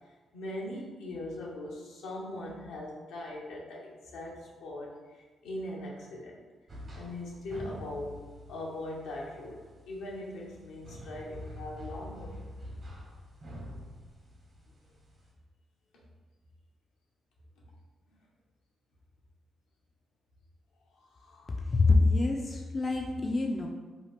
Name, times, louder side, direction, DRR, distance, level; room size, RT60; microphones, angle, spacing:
voice 1, 0.3-6.4 6.9-8.2 8.5-12.4 21.0-21.6, left 1 dB, 80° left, -3 dB, 0.6 m, -40 dB
sound 1, 6.7-15.3, equal, 45° right, 1.0 m, -46 dB
voice 2, 21.7-23.7, left 3 dB, 40° left, 1 dB, 0.3 m, -25 dB
2.8 x 2.4 x 3.3 m, 1.3 s
supercardioid pair, 50°, 0 cm